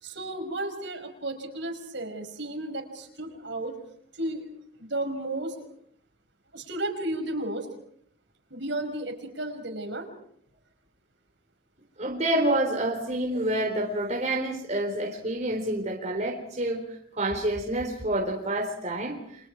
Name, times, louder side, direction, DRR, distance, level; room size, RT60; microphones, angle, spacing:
voice 1, 0.0-3.8 4.2-4.5 4.8-5.6 6.5-7.7 8.5-10.1, right 1 dB, 65° right, 4 dB, 5.6 m, -33 dB
voice 2, 12.0-19.2, right 1 dB, 35° right, 0 dB, 4.0 m, -28 dB
29.5 x 26.0 x 4.7 m, 0.67 s
head